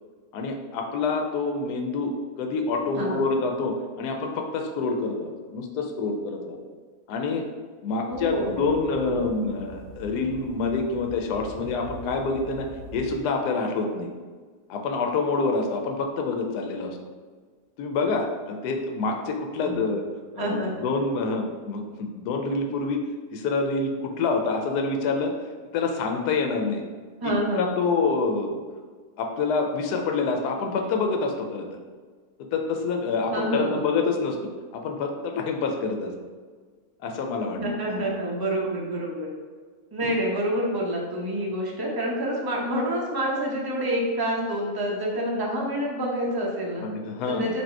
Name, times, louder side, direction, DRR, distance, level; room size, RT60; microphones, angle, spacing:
voice 1, 0.3-2.1 2.4-6.6 7.1-7.4 7.8-12.7 12.9-14.1 14.7-17.0 17.8-20.0 20.3-23.0 23.3-25.3 25.7-26.8 27.6-28.6 29.2-31.7 32.5-34.4 34.7-36.1 37.0-37.6 37.9-38.0 40.0-40.2 46.8-47.5, left 4 dB, 80° left, 3 dB, 1.2 m, -27 dB
voice 2, 8.1-9.3 19.7-19.8 20.4-20.8 27.2-27.7 33.3-33.9 37.6-39.3 39.9-46.9 47.3-47.6, right 1 dB, 30° right, -3 dB, 0.4 m, -28 dB
sound 1, 8.1-13.2, right 1 dB, 85° right, 1.2 m, -43 dB
4.2 x 2.8 x 4.4 m, 1.5 s
omnidirectional pair, 1.7 m